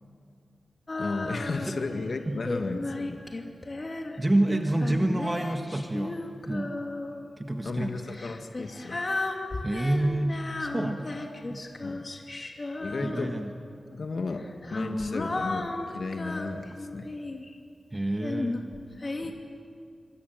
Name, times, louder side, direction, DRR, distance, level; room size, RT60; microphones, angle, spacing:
Female singing, 0.9-1.9 2.5-7.3 8.1-13.6 14.4-17.5 18.2-19.3, left 2 dB, 40° left, 2.8 m, -34 dB
voice 1, 1.0-3.2 7.6-9.0 11.8-12.1 12.8-13.3 13.9-17.1 19.2-19.3, left 3 dB, 65° left, 4 dB, 1.9 m, -34 dB
voice 2, 4.2-6.8 7.4-8.0 9.6-11.6 13.0-13.5 17.9-18.6, right 1 dB, 20° right, 4 dB, 1.6 m, -28 dB
26.0 x 24.5 x 9.3 m, 2.4 s
wide cardioid pair, 80°, 0 cm